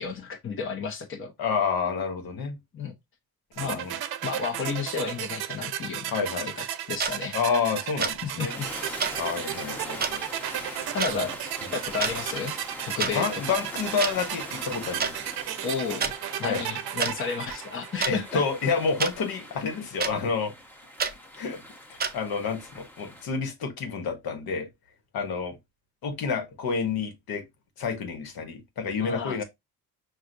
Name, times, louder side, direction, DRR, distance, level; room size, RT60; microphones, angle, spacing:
voice 1, 0.0-1.3 2.7-2.9 3.6-3.9 4.2-6.1 6.6-7.4 8.2-8.7 10.9-11.4 11.7-12.5 12.8-13.6 15.6-16.1 16.4-18.4 29.0-29.4, left 5 dB, 35° left, 0.9 m, -32 dB
voice 2, 1.4-2.6 3.6-4.0 6.1-6.5 7.3-8.6 9.2-10.8 11.1-11.3 13.1-15.2 16.4-16.6 18.1-20.5 21.4-21.6 21.9-24.7 25.1-25.6 26.0-27.4 27.8-29.4, left 5 dB, 75° left, 1.3 m, -29 dB
sound 1, 3.6-18.5, right 12 dB, 80° right, 0.6 m, -35 dB
sound 2, 7.0-7.1 8.0-8.2 9.0-9.1 10.0-10.1 11.0-11.1 11.9-12.1 13.0-13.1 14.0-14.1 15.0-15.1 16.0-16.1 17.0-17.1 18.0-18.1 19.0-19.1 20.0-20.1 21.0-21.1 22.0-22.1, right 5 dB, 25° right, 0.5 m, -27 dB
sound 3, 8.4-23.3, equal, 5° left, 0.9 m, -42 dB
6.2 x 2.5 x 2.5 m
cardioid pair, 145°, 37 cm